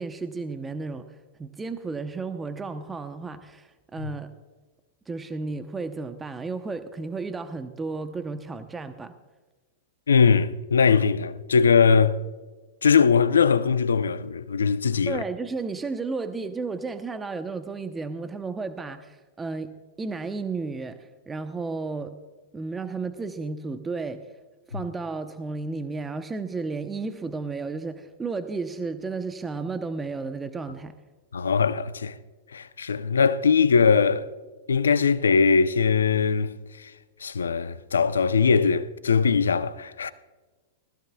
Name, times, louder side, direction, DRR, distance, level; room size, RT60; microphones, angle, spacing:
voice 1, 0.0-4.3 5.1-9.1 15.1-22.1 22.5-24.3 24.7-31.0, right 4 dB, 15° right, 0.9 m, -33 dB
voice 2, 10.1-12.1 12.8-15.2 31.3-32.1 32.5-34.2 34.7-36.5 36.8-36.9 37.2-40.1, left 5 dB, 85° left, 0.7 m, -21 dB
20.0 x 15.0 x 2.3 m
hypercardioid pair, 105°, 0 cm